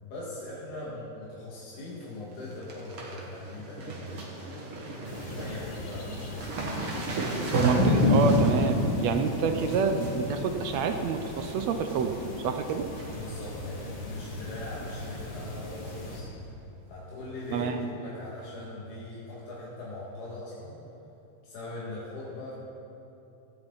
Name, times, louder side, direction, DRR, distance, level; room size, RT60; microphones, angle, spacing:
voice 1, 0.0-4.6 5.2-6.5 13.1-16.3 16.9-20.8 21.4-22.5, left 2 dB, 90° left, -7 dB, 3.5 m, -40 dB
sound 1, 1.7-2.1 2.3-11.5 11.9-12.3 12.6-13.5 13.8-13.9 14.8-15.1 15.4-15.5 15.9-16.0 17.5-17.6 18.4-18.5, right 3 dB, 50° right, 2.5 m, -35 dB
sound 2, 5.1-16.2, left 2 dB, 45° left, 2.9 m, -31 dB
voice 2, 7.6-12.2 12.4-12.9 17.5-17.8, right 5 dB, 75° right, 6 dB, 1.9 m, -28 dB
17.0 x 13.5 x 4.0 m, 2.8 s
omnidirectional pair, 3.4 m